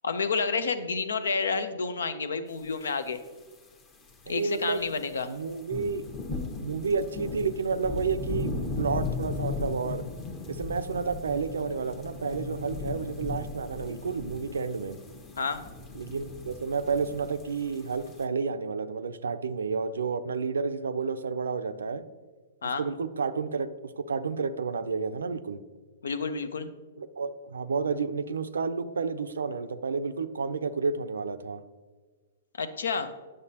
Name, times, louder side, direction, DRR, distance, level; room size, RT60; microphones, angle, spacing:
voice 1, 0.0-3.2 4.3-5.3 15.4-15.6 22.6-22.8 26.0-26.7 32.6-33.1, left 4 dB, 80° left, 12 dB, 0.6 m, -30 dB
sound 1, 2.7-2.9 3.1-18.2, left 3 dB, 30° left, 1.0 m, -37 dB
voice 2, 4.3-4.9 5.2-6.0 6.6-10.0 10.5-15.0 15.9-22.0 22.6-23.7 24.0-25.6 27.0-31.6, right 5 dB, 85° right, 12 dB, 0.4 m, -31 dB
8.9 x 6.4 x 2.8 m, 1.3 s
hypercardioid pair, 120°, 0 cm